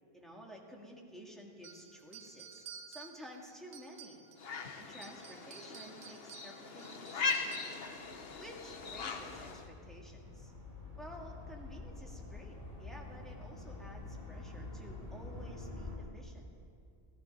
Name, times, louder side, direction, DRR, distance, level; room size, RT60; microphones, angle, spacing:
voice 1, 0.1-4.2 4.8-7.8 8.4-10.5 11.0-16.5, equal, ahead, -2 dB, 1.8 m, -52 dB
sound 1, 1.6-4.5 4.9-7.9, right 7 dB, 80° right, 1.2 m, -53 dB
sound 2, 4.4-9.7, left 4 dB, 70° left, 1.2 m, -40 dB
sound 3, 8.0-16.0, left 2 dB, 35° left, 2.6 m, -47 dB
15.0 x 15.0 x 5.3 m, 2.4 s
omnidirectional pair, 1.1 m